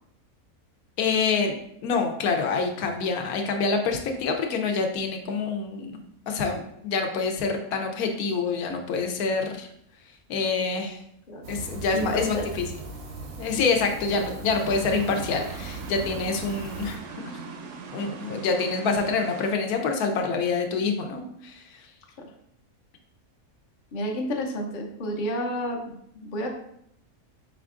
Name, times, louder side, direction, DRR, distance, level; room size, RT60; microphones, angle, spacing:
voice 1, 1.0-6.0 6.3-9.7 10.3-11.0 11.5-12.6 13.4-17.0 17.2-17.5 17.9-21.8, left 4 dB, 80° left, 4 dB, 1.1 m, -26 dB
sound 1, 11.4-17.0, right 3 dB, 90° right, 1.3 m, -38 dB
voice 2, 11.9-12.5 22.2-22.3 23.9-26.5, equal, 45° left, 1 dB, 0.6 m, -30 dB
sound 2, 14.5-19.5, right 4 dB, 65° right, 0.7 m, -40 dB
4.9 x 3.5 x 2.4 m, 0.71 s
omnidirectional pair, 1.6 m